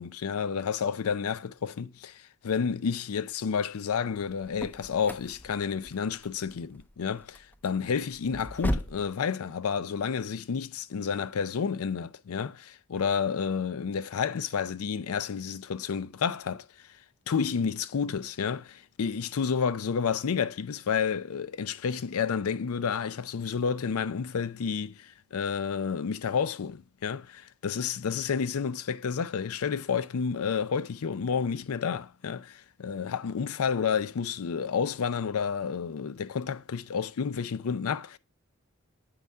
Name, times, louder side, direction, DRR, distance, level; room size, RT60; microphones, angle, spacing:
voice 1, 0.0-16.7 17.3-38.2, left 6 dB, 85° left, 0.5 m, -30 dB
sound 1, 4.1-9.1, equal, 10° left, 0.4 m, -37 dB
7.9 x 5.4 x 3.4 m
head